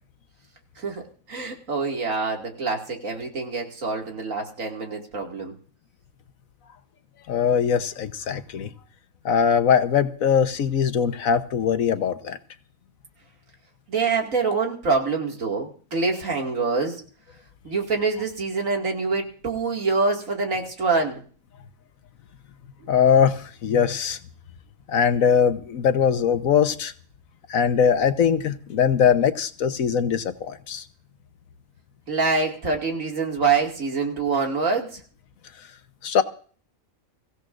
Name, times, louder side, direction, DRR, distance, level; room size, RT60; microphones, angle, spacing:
voice 1, 0.8-5.5 13.9-17.0 17.6-21.2 32.1-35.0, right 4 dB, 75° right, 2.7 m, -25 dB
voice 2, 7.3-8.7 9.2-12.4 22.9-24.2 24.9-26.9 27.5-30.8 36.0-36.2, left 7 dB, 85° left, 1.4 m, -21 dB
23.5 x 16.0 x 2.5 m
omnidirectional pair, 1.4 m